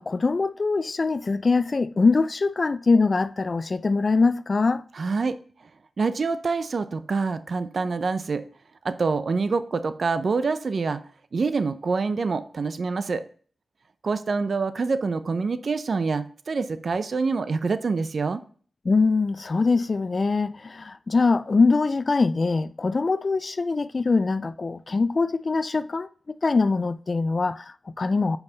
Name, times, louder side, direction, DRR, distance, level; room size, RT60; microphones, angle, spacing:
voice 1, 0.0-4.8 18.8-28.4, left 4 dB, 50° left, 0.4 m, -23 dB
voice 2, 5.0-5.4 6.0-8.4 8.8-11.0 11.3-13.2 14.0-18.4, right 4 dB, 60° right, 0.6 m, -26 dB
7.1 x 5.4 x 4.0 m
cardioid pair, 45°, 0 cm